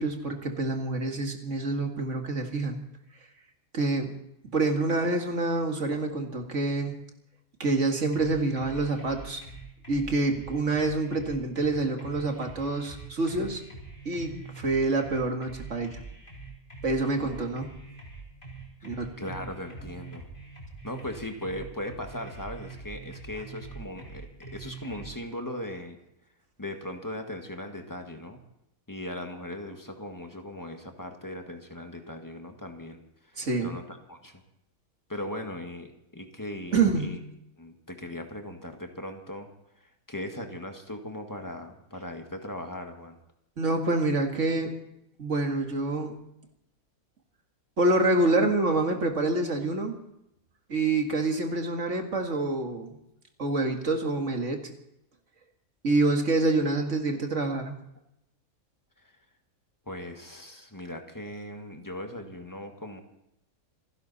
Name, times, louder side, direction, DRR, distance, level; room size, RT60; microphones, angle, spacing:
voice 1, 0.0-2.8 3.7-4.2 4.5-7.0 7.6-9.4 9.9-13.6 14.1-16.0 16.8-17.7 18.8-19.3 33.4-33.8 36.7-37.1 43.6-44.8 45.2-46.1 47.8-50.0 50.7-53.0 53.4-54.7 55.8-57.8, right 2 dB, 55° right, 4 dB, 2.3 m, -27 dB
sound 1, 8.1-25.1, right 4 dB, 35° left, 4.1 m, -44 dB
voice 2, 18.8-20.3 20.8-26.0 26.6-28.4 28.9-33.0 33.3-34.4 35.1-37.2 37.6-39.5 39.8-43.2 59.0-59.1 59.8-63.0, left 1 dB, 15° left, 4 dB, 1.7 m, -38 dB
27.5 x 11.0 x 4.2 m, 0.82 s
omnidirectional pair, 1.5 m